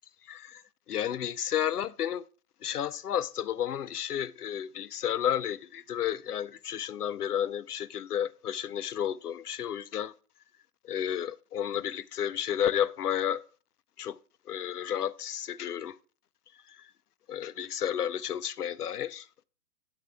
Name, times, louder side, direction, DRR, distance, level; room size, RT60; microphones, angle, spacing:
voice 1, 0.3-0.6 0.9-2.2 2.6-10.1 10.8-13.4 14.0-14.2 14.5-16.0 16.7-16.9 17.3-19.4, left 10 dB, 85° left, 0.7 m, -32 dB
9.6 x 9.3 x 2.2 m
hypercardioid pair, 130°, 45 cm